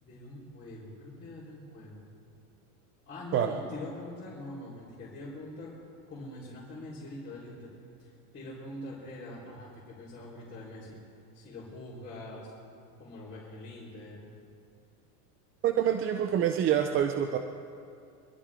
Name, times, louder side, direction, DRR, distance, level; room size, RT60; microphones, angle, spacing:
voice 1, 0.0-2.1 3.1-5.7 6.1-7.7 8.0-11.0 11.3-12.5 13.0-14.3, left 2 dB, 20° left, -8 dB, 4.3 m, -44 dB
voice 2, 15.6-17.4, right 9 dB, 25° right, 6 dB, 0.7 m, -26 dB
25.0 x 13.0 x 3.7 m, 2.4 s
supercardioid pair, 135°, 46 cm